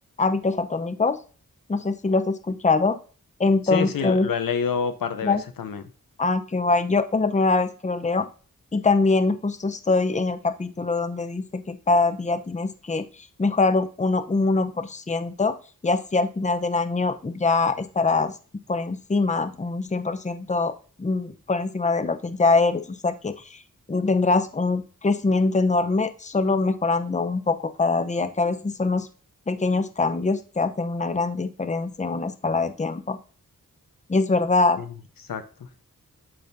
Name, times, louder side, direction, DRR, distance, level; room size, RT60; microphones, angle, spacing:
voice 1, 0.2-1.2 1.7-3.0 3.4-4.3 5.2-5.4 6.2-8.3 8.7-15.5 15.8-18.3 18.7-20.7 21.0-23.6 23.9-29.1 29.5-33.2 34.1-34.8, left 3 dB, 20° left, 8 dB, 0.7 m, -23 dB
voice 2, 3.6-5.8 34.8-34.9 35.3-35.7, left 6 dB, 80° left, 8 dB, 0.8 m, -28 dB
12.0 x 4.2 x 2.6 m, 0.39 s
cardioid pair, 45°, 34 cm